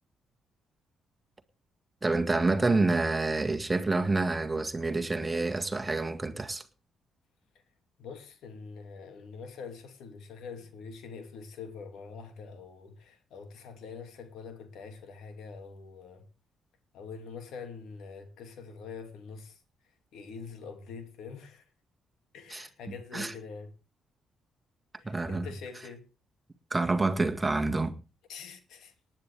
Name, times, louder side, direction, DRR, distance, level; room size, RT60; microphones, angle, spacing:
voice 1, 2.0-6.6 22.5-22.7 23.1-23.3 25.0-25.5 26.7-27.9, right 3 dB, 15° right, 1.9 m, -28 dB
voice 2, 8.0-16.3 16.9-21.7 22.3-23.7 24.9-26.1 28.3-28.9, left 5 dB, 80° left, 2.5 m, -45 dB
18.5 x 10.0 x 3.5 m
cardioid pair, 90°, 0 cm